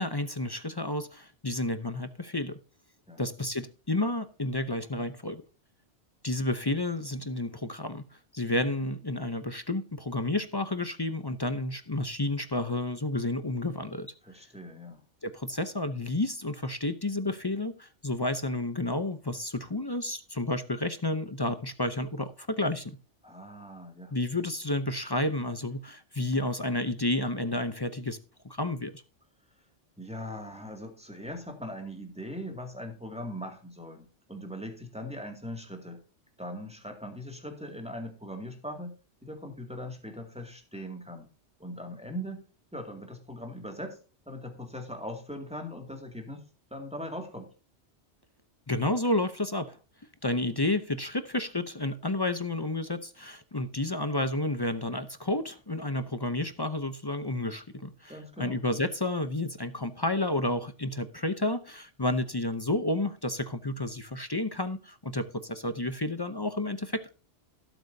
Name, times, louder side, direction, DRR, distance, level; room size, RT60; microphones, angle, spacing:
voice 1, 0.0-2.6 3.2-5.4 6.2-8.0 8.3-14.1 15.2-22.9 24.1-28.2 28.5-29.0 48.7-49.8 50.2-67.1, left 2 dB, 25° left, 0.6 m, -31 dB
voice 2, 14.2-15.0 23.2-24.1 30.0-36.0 36.4-38.9 39.2-41.3 41.6-42.4 42.7-44.0 44.3-46.4 46.7-47.5 58.1-58.6, equal, 5° right, 2.3 m, -40 dB
17.5 x 7.9 x 2.7 m
omnidirectional pair, 1.2 m